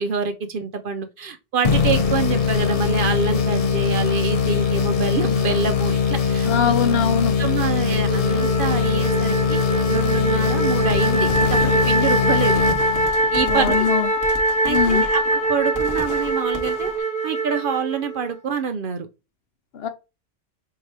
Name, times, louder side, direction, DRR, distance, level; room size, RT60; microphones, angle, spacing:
voice 1, 0.0-6.7 7.4-9.6 9.9-12.6 13.3-13.9 14.6-16.9 17.2-19.1, right 5 dB, 60° right, 0.7 m, -26 dB
sound 1, 1.6-13.4, left 6 dB, 40° left, 0.6 m, -21 dB
voice 2, 6.5-7.3 13.4-14.1 14.7-15.0 19.7-19.9, left 7 dB, 65° left, 0.9 m, -22 dB
Wind instrument woodwind instrument, 8.1-18.4, right 2 dB, 5° left, 0.7 m, -23 dB
sound 2, 10.7-17.0, right 1 dB, 15° right, 1.0 m, -35 dB
5.6 x 2.7 x 3.2 m
omnidirectional pair, 1.2 m